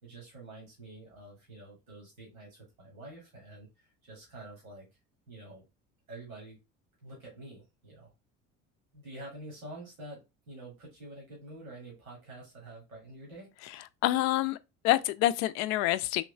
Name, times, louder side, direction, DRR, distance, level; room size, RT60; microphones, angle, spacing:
voice 1, 0.0-4.9 5.3-5.7 6.1-6.6 7.0-8.1 8.9-13.5, right 2 dB, 85° right, 1.7 m, -47 dB
voice 2, 14.0-14.6 14.8-16.2, left 15 dB, 45° left, 0.4 m, -26 dB
3.7 x 3.0 x 3.1 m
figure-of-eight pair, 65°, 41 cm